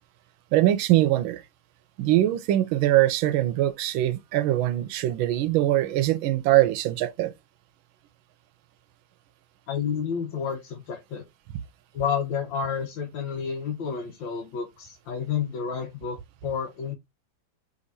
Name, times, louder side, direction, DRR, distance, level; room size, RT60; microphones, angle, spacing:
voice 1, 0.5-1.4 2.0-7.3, right 14 dB, 90° right, 1.4 m, -22 dB
voice 2, 9.7-11.2 11.9-17.0, left 7 dB, 75° left, 1.6 m, -30 dB
5.2 x 3.3 x 2.6 m
omnidirectional pair, 2.1 m